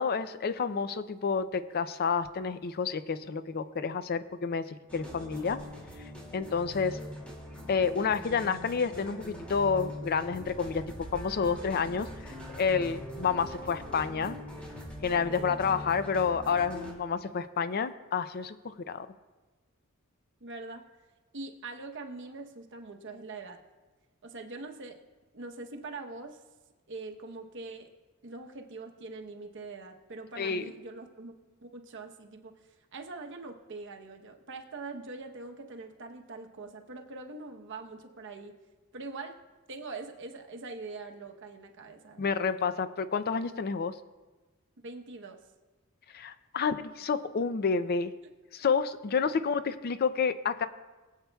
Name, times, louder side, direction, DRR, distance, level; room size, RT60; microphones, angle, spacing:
voice 1, 0.0-5.6 6.3-7.0 7.7-14.4 15.0-19.1 30.4-30.6 42.2-43.9 46.1-48.1 48.5-50.7, left 5 dB, 45° left, 12 dB, 0.4 m, -29 dB
sound 1, 4.9-16.9, left 1 dB, 5° left, 2.3 m, -42 dB
voice 2, 15.2-15.6 18.6-18.9 20.4-20.8 21.3-23.6 24.2-25.0 25.3-26.4 26.9-27.9 28.2-31.3 31.6-32.6 32.9-38.5 38.9-39.4 39.7-42.2 44.8-45.4, right 3 dB, 60° right, 4 dB, 0.9 m, -43 dB
20.5 x 8.1 x 2.3 m, 1.2 s
head